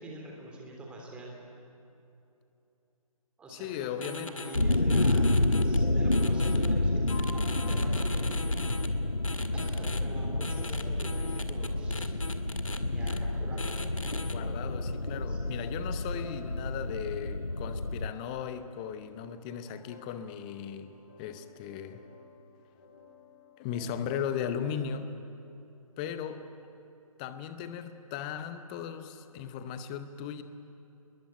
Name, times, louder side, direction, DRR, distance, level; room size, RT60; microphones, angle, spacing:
voice 1, 0.0-1.3 3.4-8.7 9.5-12.1 12.8-13.9 15.3-15.6 26.3-26.4, right 1 dB, 5° right, -1 dB, 3.3 m, -44 dB
voice 2, 3.5-4.5 14.3-22.0 23.6-25.1 26.0-26.4 27.2-30.4, left 8 dB, 10° left, 11 dB, 0.7 m, -37 dB
sound 1, 4.0-5.8 6.1-6.7 7.1-8.9 9.2-10.0 10.4-12.8 13.1-13.2 13.6-14.3, left 3 dB, 60° left, 2.0 m, -41 dB
sound 2, 4.5-18.1, left 2 dB, 90° left, 1.0 m, -29 dB
sound 3, 6.9-25.0, left 4 dB, 30° left, 4.1 m, -53 dB
29.0 x 21.5 x 8.9 m, 2.8 s
figure-of-eight pair, 145°, 19 cm